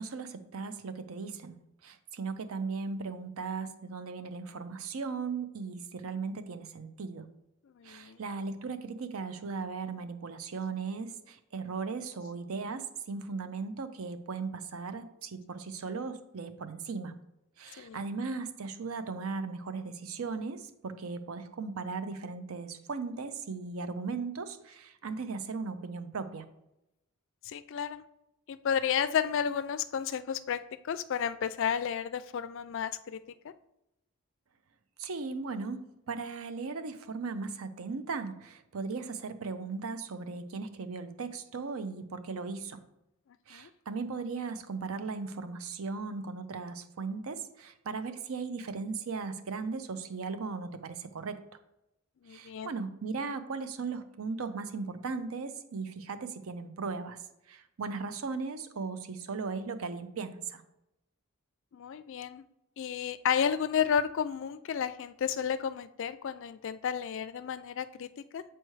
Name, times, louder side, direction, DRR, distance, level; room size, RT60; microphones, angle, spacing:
voice 1, 0.0-1.6 1.8-7.3 7.8-17.1 17.6-26.4 35.0-42.9 43.5-51.4 52.3-57.2 57.5-60.6, right 4 dB, 75° right, 0.6 m, -37 dB
voice 2, 7.8-8.2 17.8-18.0 27.4-28.0 28.5-33.2 33.4-33.5 43.5-43.7 52.2-52.7 61.7-62.4 62.8-68.1 68.3-68.4, left 8 dB, 60° left, 0.3 m, -32 dB
7.7 x 4.5 x 3.2 m
head